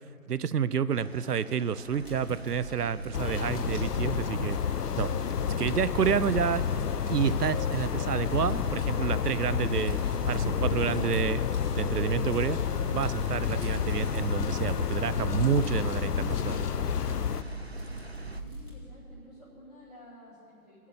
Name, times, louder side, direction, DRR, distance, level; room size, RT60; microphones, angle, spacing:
voice 1, 0.3-4.6 5.0-5.1 5.6-6.7 7.1-10.0 10.3-16.8, right 7 dB, 85° right, 16 dB, 0.6 m, -29 dB
sound 1, 0.9-18.4, right 1 dB, 45° right, 0.5 m, -46 dB
Fire, 1.8-18.7, right 2 dB, 5° right, 1.6 m, -41 dB
sound 2, 3.1-17.4, left 8 dB, 80° left, 0.6 m, -30 dB
voice 2, 18.3-20.9, left 1 dB, 25° left, -9 dB, 4.0 m, -52 dB
16.5 x 7.4 x 8.4 m, 2.6 s
figure-of-eight pair, 180°, 46 cm